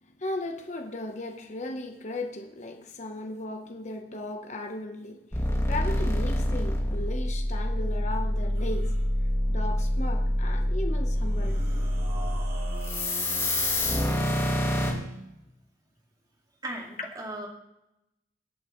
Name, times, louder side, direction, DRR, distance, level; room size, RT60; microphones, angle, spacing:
voice 1, 0.0-9.0 9.5-11.6, left 2 dB, 40° left, 4 dB, 1.1 m, -36 dB
sound 1, 5.3-14.9, left 1 dB, 15° left, 2.4 m, -26 dB
sound 2, 8.5-9.0 11.1-14.6, right 2 dB, 65° right, 4.6 m, -43 dB
voice 2, 16.6-17.5, right 1 dB, 20° right, 0 dB, 2.2 m, -36 dB
22.5 x 8.3 x 3.2 m, 0.87 s
head